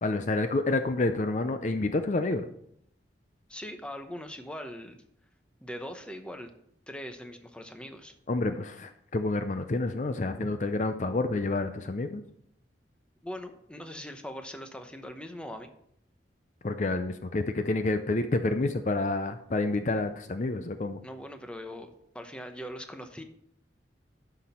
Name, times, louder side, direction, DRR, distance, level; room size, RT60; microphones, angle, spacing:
voice 1, 0.0-2.5 8.3-12.2 16.6-21.0, left 2 dB, 40° left, 9 dB, 0.5 m, -29 dB
voice 2, 3.5-5.0 5.6-6.5 6.9-8.1 10.4-10.5 13.2-15.7 21.0-23.2, equal, 5° left, 6 dB, 0.8 m, -41 dB
11.0 x 6.0 x 4.3 m, 0.71 s
head